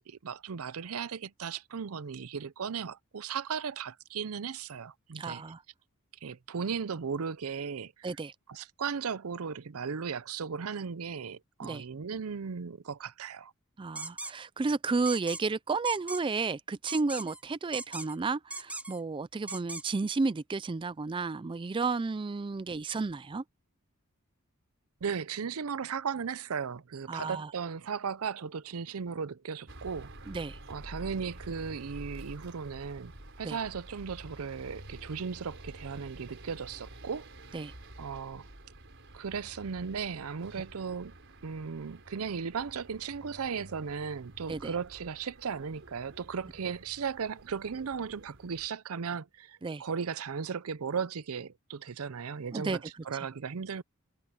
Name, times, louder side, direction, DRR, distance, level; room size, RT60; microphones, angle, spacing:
voice 1, 0.0-5.4 6.2-8.1 8.5-13.5 25.0-30.4 30.7-33.1 33.4-37.3 38.0-38.5 39.1-41.1 41.4-53.8, right 6 dB, 75° right, 0.6 m, -36 dB
voice 2, 5.1-5.6 8.0-8.3 11.6-11.9 13.8-23.4 27.1-27.5 30.3-30.6 33.4-33.6 37.5-37.7 44.5-44.7 49.6-49.8 52.5-52.8 53.1-53.3, right 4 dB, 25° right, 0.4 m, -32 dB
sound 1, 14.0-14.3 15.1-15.4 15.8-16.2 16.9-17.4 17.7-18.2 18.5-19.0 19.5-19.8, right 2 dB, 5° right, 2.1 m, -39 dB
sound 2, 29.7-48.7, right 1 dB, 55° right, 5.0 m, -49 dB
head